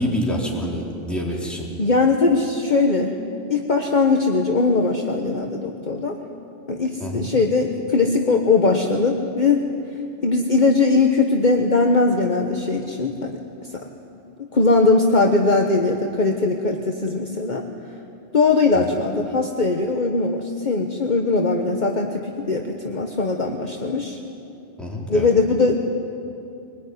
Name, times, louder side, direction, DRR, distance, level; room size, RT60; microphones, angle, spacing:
voice 1, 0.0-1.7 7.0-7.3 24.8-25.3, equal, ahead, -3 dB, 4.1 m, -26 dB
voice 2, 1.8-3.2 3.5-6.2 6.7-9.7 10.2-17.6 18.3-24.2 25.1-25.7, left 3 dB, 40° left, 2 dB, 1.3 m, -20 dB
23.0 x 20.0 x 9.7 m, 2.7 s
omnidirectional pair, 1.2 m